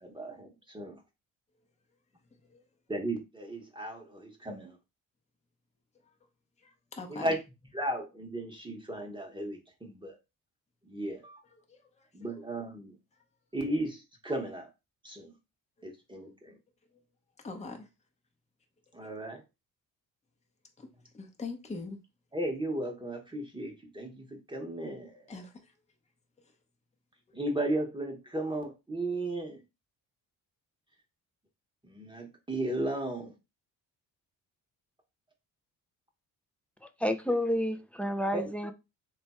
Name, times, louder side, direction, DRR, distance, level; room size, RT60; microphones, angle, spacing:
voice 1, 0.0-1.0 2.9-4.8 7.1-7.4 7.7-10.2 10.9-11.4 12.1-13.0 13.5-14.7 15.0-15.3 15.8-16.5 18.9-19.4 22.3-25.3 27.3-29.6 31.8-33.3 38.3-38.4, right 1 dB, 15° right, 0.9 m, -35 dB
voice 2, 6.6-7.4 11.5-12.1 15.8-15.9 17.4-17.9 19.0-19.1 20.8-20.9 21.1-22.0 25.3-25.7, left 3 dB, 20° left, 0.8 m, -43 dB
voice 3, 36.8-38.7, equal, 5° left, 0.4 m, -30 dB
3.2 x 2.4 x 4.1 m
cardioid pair, 105°, 34 cm